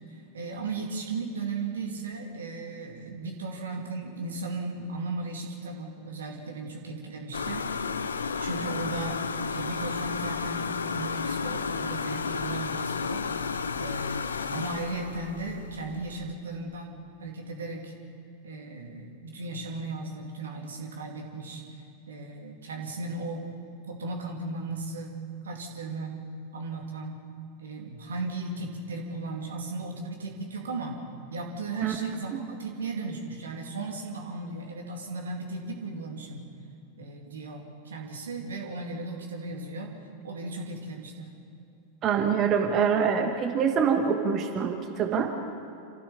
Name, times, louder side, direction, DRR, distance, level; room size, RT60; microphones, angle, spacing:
voice 1, 0.1-7.6 8.4-17.9 18.4-21.8 22.1-23.5 23.9-25.2 25.4-26.2 26.5-27.2 27.6-31.0 31.3-36.5 37.0-39.9 40.2-41.3, right 3 dB, 65° right, 1 dB, 2.5 m, -36 dB
sound 1, 7.3-16.3, left 5 dB, 70° left, 0.9 m, -32 dB
voice 2, 42.0-45.3, right 6 dB, 35° right, 4 dB, 1.7 m, -25 dB
28.0 x 14.5 x 7.0 m, 2.8 s
figure-of-eight pair, 90°, 0 cm